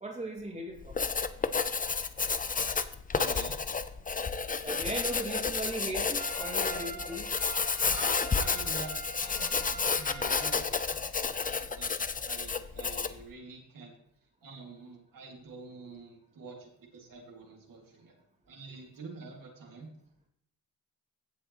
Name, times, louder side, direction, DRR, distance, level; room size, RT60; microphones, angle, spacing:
voice 1, 0.0-1.0 4.6-7.4, right 1 dB, 20° right, 1 dB, 2.4 m, -38 dB
Writing, 0.8-13.2, left 5 dB, 25° left, 0.6 m, -31 dB
voice 2, 3.1-3.5 7.9-12.0 12.2-13.9 14.4-18.2 18.5-19.9, right 4 dB, 70° right, 0 dB, 2.4 m, -47 dB
Trumpet, 6.2-10.6, right 4 dB, 85° right, 1.8 m, -45 dB
16.0 x 6.7 x 3.1 m, 0.73 s
cardioid pair, 90°, 34 cm